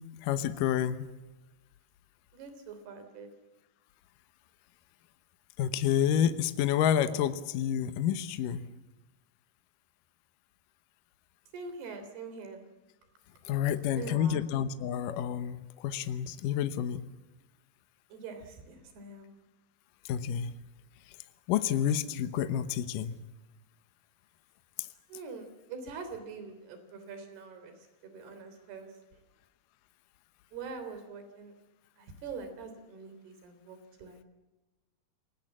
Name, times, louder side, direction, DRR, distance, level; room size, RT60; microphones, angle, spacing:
voice 1, 0.2-1.1 5.6-8.7 13.5-17.1 20.1-20.5 21.5-23.2, left 9 dB, 75° left, 11 dB, 2.0 m, -29 dB
voice 2, 2.3-3.3 11.5-12.6 13.8-14.5 18.1-19.3 25.1-27.8 28.0-29.0 30.5-31.5 32.0-34.2, right 4 dB, 65° right, 8 dB, 5.2 m, -44 dB
28.5 x 19.0 x 7.4 m, 1.1 s
omnidirectional pair, 5.2 m